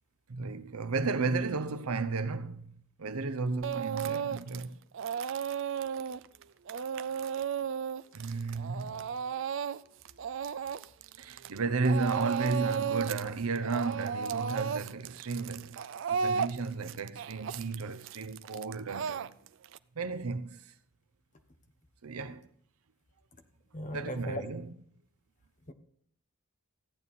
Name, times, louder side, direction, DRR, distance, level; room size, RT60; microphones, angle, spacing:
voice 1, 0.3-2.7 3.0-4.8 8.1-9.1 11.2-19.4 20.0-20.6 22.0-22.5 23.9-24.7, right 4 dB, 85° right, 0.8 m, -33 dB
Speech / Crying sobbing, 3.6-4.6 4.9-11.6 11.8-13.3 13.6-19.8, right 7 dB, 60° right, 0.4 m, -34 dB
voice 2, 23.7-24.4 25.7-25.8, equal, 35° left, 1.0 m, -39 dB
14.5 x 8.9 x 4.2 m
head